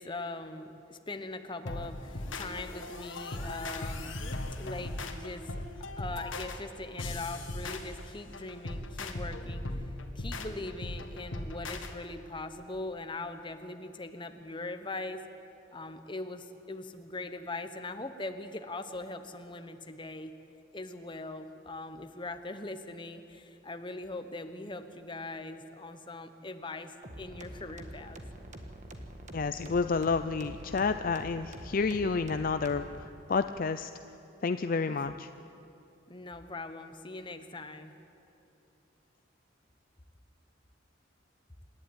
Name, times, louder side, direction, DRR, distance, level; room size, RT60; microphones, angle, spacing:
voice 1, 0.0-9.6 10.1-15.2 15.7-20.3 20.7-28.2 34.9-35.0 36.1-37.9, left 2 dB, 25° left, 8 dB, 1.0 m, -41 dB
sound 1, 1.7-11.9, left 2 dB, 85° left, 1.7 m, -38 dB
sound 2, 27.0-33.0, right 1 dB, 40° right, 1.6 m, -46 dB
voice 2, 29.3-33.9 34.4-35.3, left 4 dB, 45° left, 10 dB, 0.4 m, -30 dB
27.0 x 11.5 x 9.2 m, 3.0 s
head